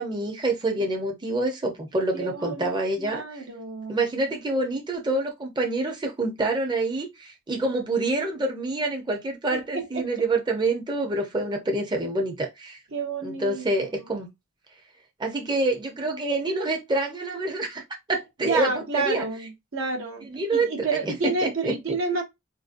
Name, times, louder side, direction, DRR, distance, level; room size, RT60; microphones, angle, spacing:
voice 1, 0.0-3.4 3.9-12.8 13.2-14.3 15.2-17.8 18.1-19.3 20.3-21.1 21.4-22.0, right 2 dB, 20° right, 0.6 m, -27 dB
voice 2, 2.1-4.0 9.5-10.2 12.9-13.6 18.4-20.3 20.5-22.2, right 4 dB, 65° right, 0.8 m, -30 dB
4.0 x 2.6 x 2.5 m
head